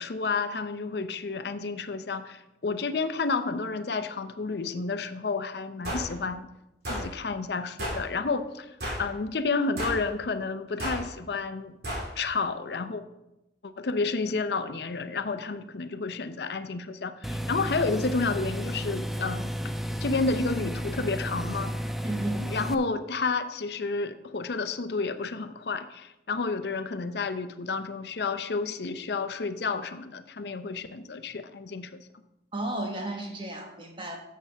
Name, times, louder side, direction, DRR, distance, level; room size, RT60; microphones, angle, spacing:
voice 1, 0.0-6.5 6.9-11.7 12.2-13.0 13.6-19.5 20.0-21.7 22.5-32.1, left 4 dB, 70° left, 10 dB, 0.6 m, -30 dB
sound 1, 5.8-6.1 6.8-7.1 7.8-8.0 8.8-9.1 9.8-10.0 10.8-11.0 11.8-12.1, equal, 65° right, 3.0 m, -32 dB
sound 2, 17.2-22.7, equal, ahead, 0.3 m, -32 dB
voice 2, 22.0-22.5 32.5-34.2, right 1 dB, 30° right, 2 dB, 1.3 m, -33 dB
11.0 x 7.4 x 3.4 m, 0.91 s
head